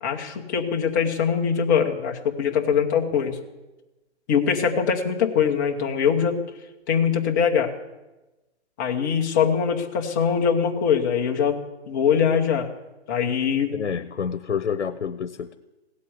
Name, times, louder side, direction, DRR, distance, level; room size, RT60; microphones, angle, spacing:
voice 1, 0.0-3.4 4.3-6.4 6.9-7.7 8.8-11.6 11.9-12.7 13.1-13.7, left 7 dB, 15° left, 2 dB, 0.9 m, -22 dB
voice 2, 13.7-15.5, left 7 dB, 90° left, 12 dB, 0.9 m, -28 dB
16.5 x 8.4 x 9.5 m, 1.1 s
hypercardioid pair, 160°, 34 cm